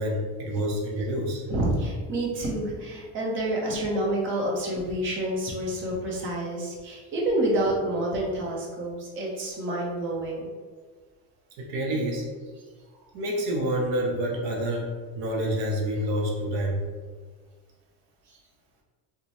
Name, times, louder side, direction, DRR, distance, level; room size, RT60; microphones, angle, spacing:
voice 1, 0.0-1.4 11.6-12.3 13.1-16.8, equal, 70° right, -1 dB, 0.8 m, -28 dB
voice 2, 1.5-10.5, right 1 dB, 30° right, -3 dB, 0.8 m, -28 dB
3.0 x 2.2 x 4.1 m, 1.5 s
cardioid pair, 140°, 38 cm